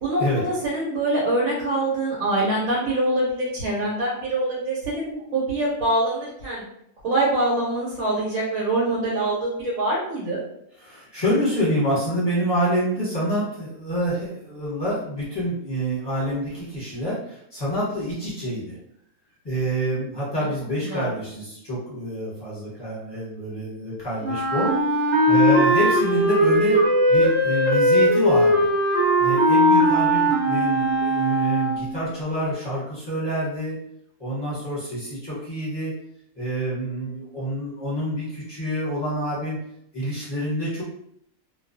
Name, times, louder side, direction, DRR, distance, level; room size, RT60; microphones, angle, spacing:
voice 1, 0.0-6.6 7.0-10.4 20.4-20.5 20.9-21.1, right 1 dB, 80° right, -5 dB, 1.1 m, -24 dB
voice 2, 10.8-18.8 19.4-24.7 25.3-26.8 27.1-28.7 29.2-33.8 34.2-35.9 36.4-39.6 39.9-40.8, equal, 20° left, -8 dB, 0.8 m, -27 dB
Wind instrument woodwind instrument, 24.2-31.9, equal, 60° right, 0.9 m, -19 dB
2.3 x 2.2 x 2.5 m, 0.74 s
omnidirectional pair, 1.5 m